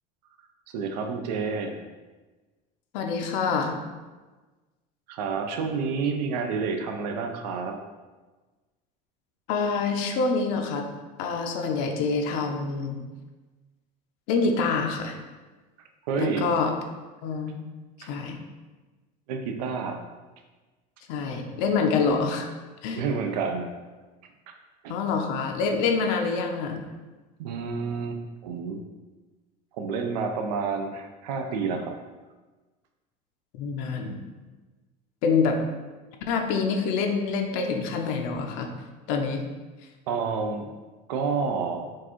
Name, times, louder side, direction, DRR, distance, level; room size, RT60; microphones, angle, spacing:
voice 1, 0.7-1.8 5.1-7.8 16.0-16.5 18.0-18.1 19.3-20.0 22.9-23.7 24.5-24.6 24.8-24.9 27.4-28.8 29.7-32.0 40.1-40.7 41.1-41.9, right 5 dB, 90° right, 5 dB, 0.4 m, -29 dB
voice 2, 2.9-3.8 9.5-10.9 11.2-13.0 14.3-15.2 16.2-16.7 17.2-17.5 18.0-18.4 21.1-22.5 22.8-23.0 24.9-26.8 33.5-34.2 35.2-35.6 36.3-38.7 39.1-39.4, left 4 dB, 70° left, 3 dB, 0.5 m, -26 dB
4.5 x 2.4 x 2.9 m, 1.3 s
supercardioid pair, 110°, 20 cm